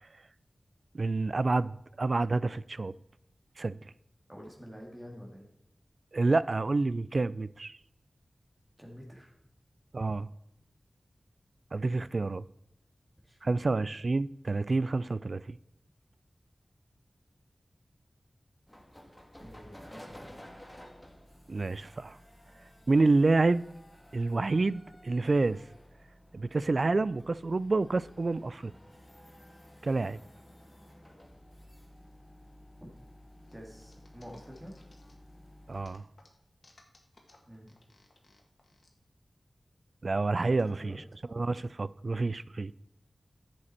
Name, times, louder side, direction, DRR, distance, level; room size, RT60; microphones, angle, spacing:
voice 1, 0.9-2.9 3.6-3.8 6.1-7.8 9.9-10.3 11.7-12.4 13.4-15.6 21.5-22.2 22.9-23.6 24.1-25.6 26.3-28.7 29.8-30.2 35.7-36.0 40.0-41.0 41.3-42.7, right 3 dB, 60° right, 0.3 m, -28 dB
voice 2, 4.3-5.5 8.8-9.3 13.2-13.4 19.4-20.6 32.8-32.9 33.5-34.7 37.5-37.8 40.5-41.0, equal, 20° right, 2.2 m, -48 dB
sound 1, 18.7-36.0, left 1 dB, 15° left, 1.6 m, -54 dB
sound 2, 33.5-35.4 35.7-38.9, left 2 dB, 65° left, 1.8 m, -61 dB
10.5 x 7.6 x 4.3 m
cardioid pair, 45°, 0 cm